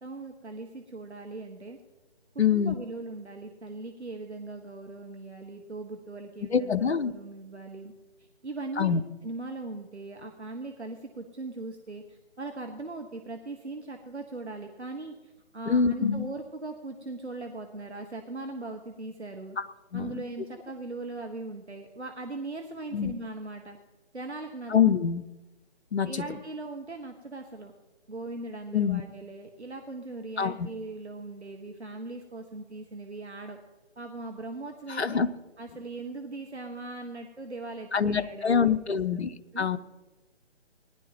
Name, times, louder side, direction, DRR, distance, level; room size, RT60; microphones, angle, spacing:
voice 1, 0.0-1.8 2.3-7.9 8.2-19.6 19.9-23.8 24.1-24.7 26.0-27.7 28.1-33.6 34.0-35.2 35.6-39.2 39.5-39.7, right 2 dB, 85° right, 4 dB, 1.4 m, -40 dB
voice 2, 2.4-2.7 6.5-7.1 8.8-9.0 15.7-16.3 19.6-19.7 19.9-20.2 22.9-23.1 24.7-25.2 25.9-26.1 28.7-29.0 30.4-30.5 34.9-35.3 37.9-39.3 39.6-39.8, left 7 dB, 75° left, 10 dB, 0.7 m, -25 dB
19.0 x 11.0 x 2.9 m, 1.1 s
figure-of-eight pair, 145°, 33 cm